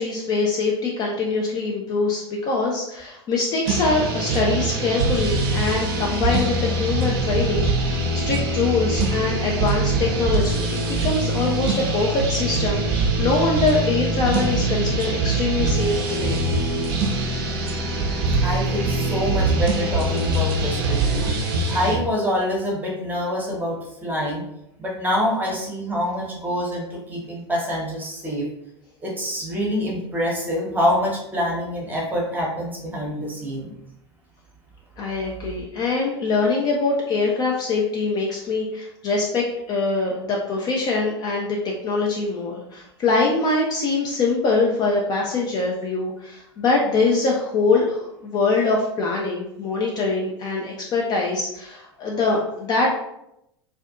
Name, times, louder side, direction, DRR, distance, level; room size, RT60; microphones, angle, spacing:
voice 1, 0.0-16.4 35.0-52.9, left 3 dB, 30° left, -2 dB, 0.4 m, -23 dB
sound 1, 3.6-22.0, right 2 dB, 50° right, 0.6 m, -23 dB
voice 2, 18.4-21.3 21.7-24.4 24.8-28.5 29.0-33.7, equal, 10° right, -2 dB, 0.8 m, -26 dB
2.5 x 2.2 x 2.4 m, 0.81 s
figure-of-eight pair, 80°, 14 cm